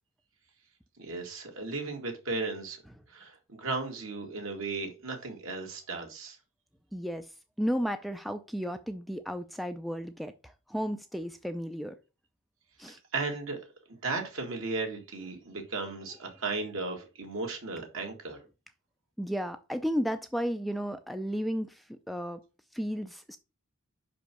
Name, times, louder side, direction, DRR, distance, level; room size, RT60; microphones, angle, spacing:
voice 1, 1.0-2.8 3.1-6.4 13.1-13.6 13.9-18.4, right 3 dB, 65° right, 2.2 m, -35 dB
voice 2, 6.9-7.3 7.6-11.9 12.8-13.0 19.2-22.4 22.7-23.4, equal, ahead, 0.4 m, -33 dB
5.7 x 5.1 x 6.0 m
head